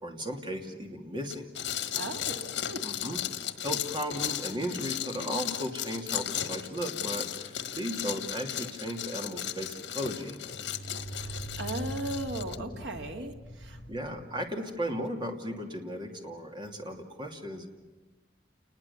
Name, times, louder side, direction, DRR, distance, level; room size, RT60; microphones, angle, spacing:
voice 1, 0.0-1.5 2.8-3.2 3.6-10.4 12.6-12.8 13.9-17.7, equal, 25° right, 3 dB, 2.7 m, -36 dB
sound 1, 1.3-12.6, left 10 dB, 80° left, 1.4 m, -36 dB
voice 2, 1.9-2.9 11.1-13.8, right 1 dB, 90° right, 4 dB, 2.3 m, -37 dB
sound 2, 5.1-5.2 10.5-15.1, right 1 dB, 60° left, 3.0 m, -42 dB
29.5 x 20.5 x 7.1 m, 1.3 s
head